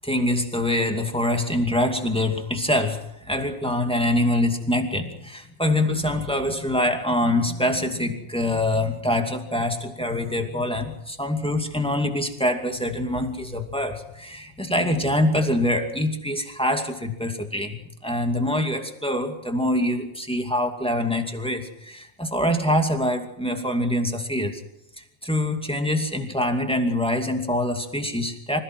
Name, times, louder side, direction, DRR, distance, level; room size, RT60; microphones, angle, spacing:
voice 1, 0.0-24.6 25.0-28.6, left 1 dB, 5° left, 3 dB, 1.1 m, -25 dB
26.5 x 17.0 x 6.2 m, 0.83 s
omnidirectional pair, 4.5 m